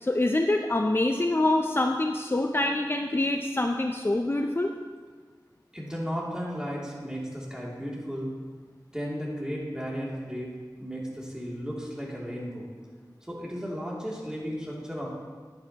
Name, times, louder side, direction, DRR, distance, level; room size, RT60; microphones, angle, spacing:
voice 1, 0.0-4.7, left 2 dB, 30° left, 3 dB, 0.5 m, -25 dB
voice 2, 5.7-8.3 8.9-10.5 10.8-12.7 13.3-15.1, equal, 10° right, -5 dB, 2.6 m, -34 dB
11.0 x 9.6 x 2.9 m, 1.5 s
wide cardioid pair, 50°, 8 cm